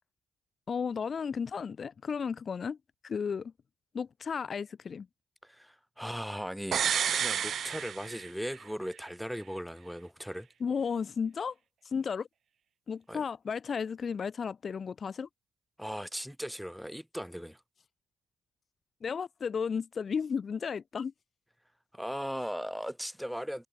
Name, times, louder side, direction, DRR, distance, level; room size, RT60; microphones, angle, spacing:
voice 1, 0.7-2.8 3.0-3.5 3.9-5.1 10.6-11.5 11.8-12.3 12.9-15.3 19.0-21.1, left 6 dB, 45° left, 2.8 m, -33 dB
voice 2, 5.4-6.8 7.1-10.5 13.1-13.2 15.8-17.6 21.9-23.7, equal, ahead, 4.6 m, -38 dB
sound 1, 6.7-8.6 8.9-9.0, right 8 dB, 60° right, 0.5 m, -30 dB
cardioid pair, 90°, 0 cm